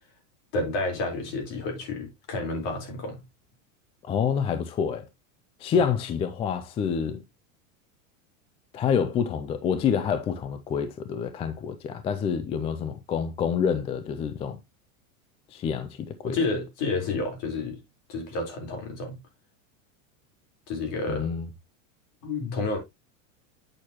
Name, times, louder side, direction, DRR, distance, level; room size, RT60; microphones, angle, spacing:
voice 1, 0.5-3.2 16.2-17.8 18.1-19.2 20.7-21.3 22.2-22.8, left 3 dB, 50° left, 4.0 m, -30 dB
voice 2, 4.0-5.1 5.6-7.2 8.7-14.6 15.5-16.4 21.1-21.5, left 7 dB, 15° left, 0.3 m, -27 dB
8.7 x 6.2 x 2.9 m
supercardioid pair, 145°, 40 cm